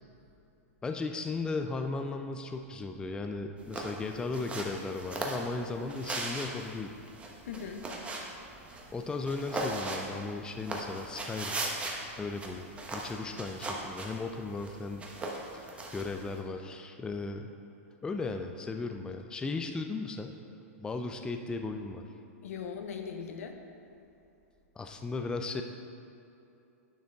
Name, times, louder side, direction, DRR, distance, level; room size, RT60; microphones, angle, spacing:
voice 1, 0.8-6.9 8.9-11.6 12.2-15.0 15.5-17.5 18.0-20.3 20.8-22.1 24.8-25.6, left 3 dB, 10° left, 5 dB, 0.4 m, -36 dB
sound 1, 3.6-16.4, right 2 dB, 15° right, 1.0 m, -39 dB
voice 2, 7.4-7.9 22.4-23.6, left 6 dB, 75° left, 5 dB, 0.9 m, -39 dB
10.5 x 6.2 x 3.6 m, 2.8 s
hypercardioid pair, 120°, 8 cm